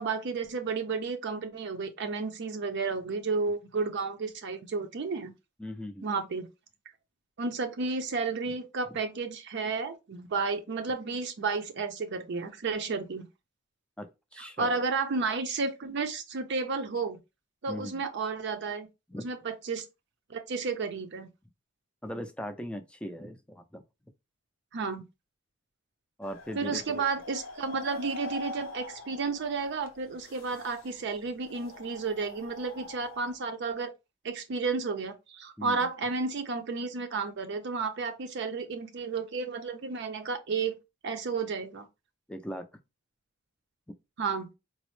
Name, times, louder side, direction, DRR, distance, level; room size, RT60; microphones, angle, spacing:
voice 1, 0.0-5.3 6.0-6.5 7.4-13.3 14.4-17.2 17.6-18.9 19.2-19.8 20.3-21.3 24.7-25.0 26.5-33.9 34.2-40.8 41.0-41.9 44.2-44.5, right 4 dB, 60° right, 0.5 m, -32 dB
voice 2, 5.6-6.1 8.9-9.0 14.0-14.8 17.7-18.0 19.1-19.2 22.0-23.8 26.2-27.0 35.6-35.9 42.3-42.7, equal, 5° left, 0.4 m, -39 dB
sound 1, 26.2-33.3, left 3 dB, 75° left, 0.7 m, -45 dB
4.0 x 2.0 x 3.1 m
head